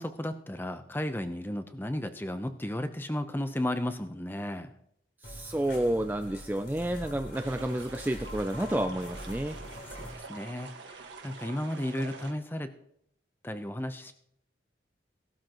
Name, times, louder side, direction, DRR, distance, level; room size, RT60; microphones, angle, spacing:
voice 1, 0.0-4.7 9.9-12.7 13.4-14.1, left 1 dB, 10° left, 9 dB, 0.7 m, -34 dB
sound 1, 5.2-10.1, left 1 dB, 65° left, 4.2 m, -43 dB
voice 2, 5.2-9.6, right 1 dB, 10° right, 7 dB, 0.3 m, -30 dB
sound 2, 7.3-12.3, right 4 dB, 80° right, 1.6 m, -46 dB
17.5 x 12.5 x 3.0 m, 0.73 s
head